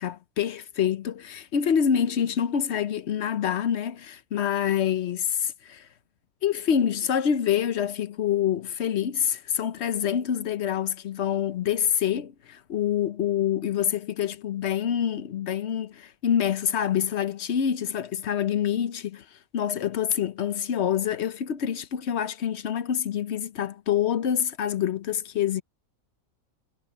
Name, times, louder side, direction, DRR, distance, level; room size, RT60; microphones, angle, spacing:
voice 1, 0.0-5.9 6.4-19.2 19.5-25.6, left 9 dB, 55° left, 0.9 m, -26 dB
omnidirectional pair, 1.6 m